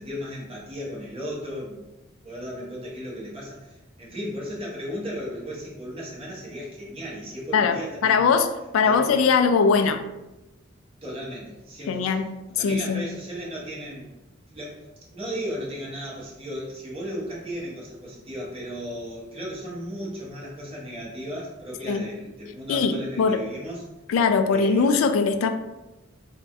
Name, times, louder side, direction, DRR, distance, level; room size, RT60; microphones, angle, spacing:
voice 1, 0.0-1.9 2.2-8.3 8.8-9.2 11.0-12.3 12.5-14.1 14.5-14.9 15.1-23.8 24.5-25.0, equal, 30° right, -6 dB, 1.0 m, -35 dB
voice 2, 8.0-8.5 8.7-10.1 11.9-12.3 12.6-13.0 21.9-22.0 22.7-23.4 24.1-25.5, left 5 dB, 75° left, 9 dB, 0.3 m, -21 dB
3.1 x 2.2 x 2.6 m, 1.0 s
head